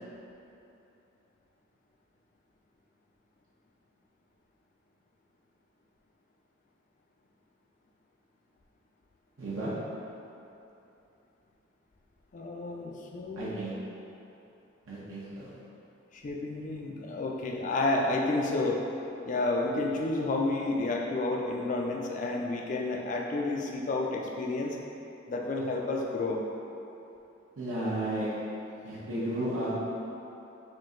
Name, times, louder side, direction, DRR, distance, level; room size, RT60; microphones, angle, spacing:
voice 1, 9.4-9.7 13.4-13.7 14.9-15.5 27.6-28.3 28.8-29.7, right 1 dB, 85° right, -10 dB, 1.0 m, -33 dB
voice 2, 12.3-13.5 16.1-18.8 19.2-24.8 25.3-26.4, left 2 dB, 40° left, 0 dB, 0.4 m, -30 dB
3.7 x 2.7 x 3.7 m, 2.9 s
head